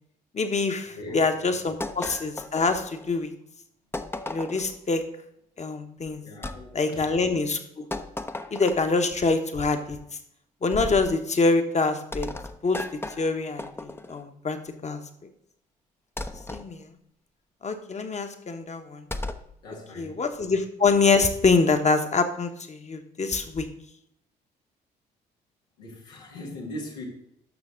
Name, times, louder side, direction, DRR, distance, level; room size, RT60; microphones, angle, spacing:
voice 1, 0.3-3.3 4.3-5.0 5.6-6.2 6.7-7.8 8.5-10.0 10.6-12.3 12.6-12.8 13.2-14.6 14.8-15.0 16.5-16.9 17.6-19.0 20.0-23.7, left 4 dB, 35° left, 7 dB, 1.3 m, -25 dB
voice 2, 0.9-1.3 6.2-7.3 19.6-20.2 25.8-27.1, left 1 dB, 85° left, -1 dB, 1.9 m, -40 dB
sound 1, 1.8-3.2 3.9-4.8 6.4-6.6 7.9-9.0 10.7-11.1 12.1-14.2 16.2-16.7 19.1-19.5, left 2 dB, 10° left, 0.7 m, -35 dB
12.5 x 5.9 x 3.8 m, 0.74 s
hypercardioid pair, 50°, 21 cm